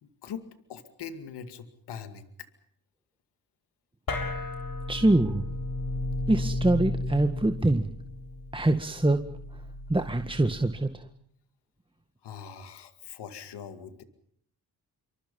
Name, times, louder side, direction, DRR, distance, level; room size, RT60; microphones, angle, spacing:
voice 1, 0.0-2.5 12.2-14.0, left 7 dB, 90° left, 9 dB, 2.2 m, -42 dB
sound 1, 4.1-10.8, left 2 dB, 60° left, 7.1 m, -34 dB
voice 2, 4.9-5.4 6.3-7.9 8.5-9.2 9.9-10.9, right 2 dB, 15° right, 7 dB, 1.8 m, -24 dB
27.0 x 25.0 x 5.5 m, 0.66 s
cardioid pair, 60°, 40 cm